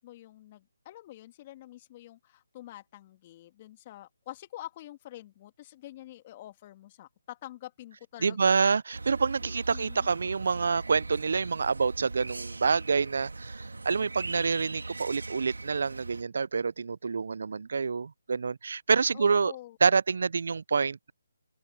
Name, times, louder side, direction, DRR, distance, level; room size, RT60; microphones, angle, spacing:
voice 1, 0.0-8.8 9.4-10.1 19.1-19.8, left 14 dB, 30° left, 2.6 m, -47 dB
voice 2, 8.2-19.5 19.8-21.1, right 5 dB, 65° right, 0.4 m, -27 dB
sound 1, 8.9-16.2, right 3 dB, 90° right, 2.8 m, -40 dB
figure-of-eight pair, 155°, 0 cm